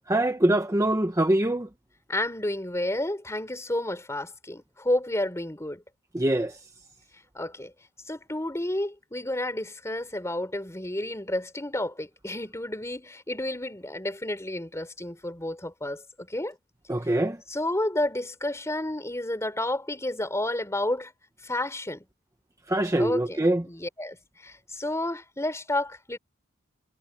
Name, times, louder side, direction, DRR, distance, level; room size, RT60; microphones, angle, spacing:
voice 1, 0.1-1.7 6.1-6.5 16.9-17.4 22.7-23.6, right 1 dB, 15° right, 0.9 m, -23 dB
voice 2, 2.1-5.8 7.4-7.7 8.1-16.5 17.5-21.1 21.4-22.0 23.0-24.2 24.4-26.2, left 1 dB, 15° left, 3.6 m, -31 dB
head